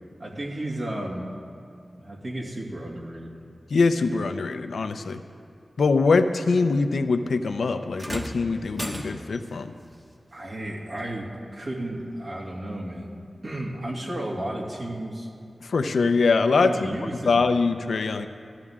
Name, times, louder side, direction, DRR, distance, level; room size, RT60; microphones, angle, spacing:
voice 1, 0.2-1.3 1.9-3.3 10.3-13.1 13.4-15.3 16.5-17.5, right 1 dB, 65° right, -3 dB, 2.6 m, -33 dB
voice 2, 3.7-5.2 5.8-9.7 15.6-16.7 17.2-18.3, left 4 dB, 85° left, 7 dB, 0.6 m, -23 dB
sound 1, 8.0-9.5 11.0-11.1 12.0-12.1, equal, 25° right, 1.2 m, -35 dB
16.5 x 14.5 x 3.7 m, 2.5 s
cardioid pair, 50°, 0 cm